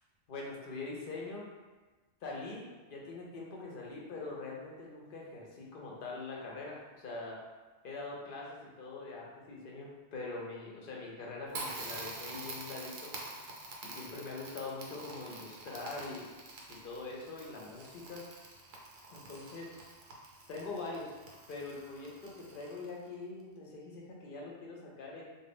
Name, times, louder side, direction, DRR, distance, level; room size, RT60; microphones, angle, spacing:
voice 1, 0.3-1.5 2.2-7.4 7.8-13.1 13.8-16.3 16.7-18.2 19.1-19.7 20.5-21.1 21.5-25.2, left 3 dB, 60° left, -2 dB, 0.7 m, -43 dB
Crackle, 11.5-23.1, right 2 dB, 70° right, 0.8 m, -47 dB
2.4 x 2.2 x 3.3 m, 1.3 s
omnidirectional pair, 1.2 m